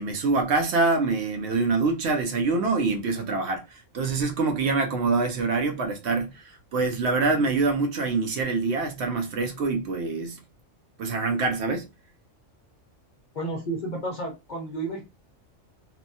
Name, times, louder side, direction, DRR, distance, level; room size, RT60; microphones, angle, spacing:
voice 1, 0.0-10.4 11.0-11.9, right 3 dB, 65° right, 0.8 m, -25 dB
voice 2, 13.3-15.0, right 2 dB, 50° left, 0.5 m, -31 dB
2.8 x 2.2 x 2.6 m
omnidirectional pair, 1.3 m